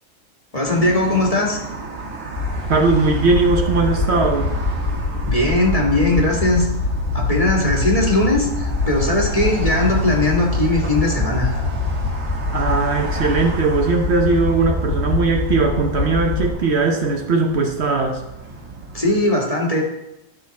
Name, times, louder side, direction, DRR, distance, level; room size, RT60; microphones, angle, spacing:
voice 1, 0.5-1.6 5.3-6.7 7.1-11.5 18.9-19.8, left 1 dB, 30° left, -1 dB, 1.8 m, -19 dB
sound 1, 0.7-19.3, right 3 dB, 85° right, 2.1 m, -33 dB
sound 2, 2.3-16.5, left 3 dB, 65° left, 1.8 m, -24 dB
voice 2, 2.7-4.5 12.5-18.2, right 3 dB, 60° right, 3 dB, 1.1 m, -19 dB
12.5 x 6.3 x 4.1 m, 0.92 s
omnidirectional pair, 1.3 m